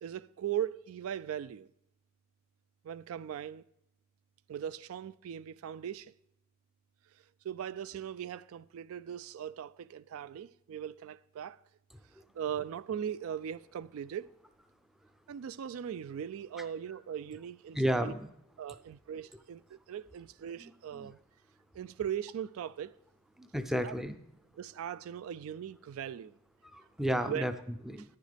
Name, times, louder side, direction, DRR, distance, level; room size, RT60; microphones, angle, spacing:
voice 1, 0.0-1.7 2.8-3.6 4.5-6.1 7.4-11.6 12.3-14.3 15.3-18.1 18.6-21.2 21.7-22.9 23.8-23.9 24.6-26.4 27.2-27.5, right 9 dB, 75° right, 0.3 m, -39 dB
voice 2, 17.7-18.3 20.6-21.1 23.4-24.2 26.7-27.5 27.9-28.0, equal, ahead, 0.4 m, -32 dB
11.0 x 10.0 x 3.4 m
head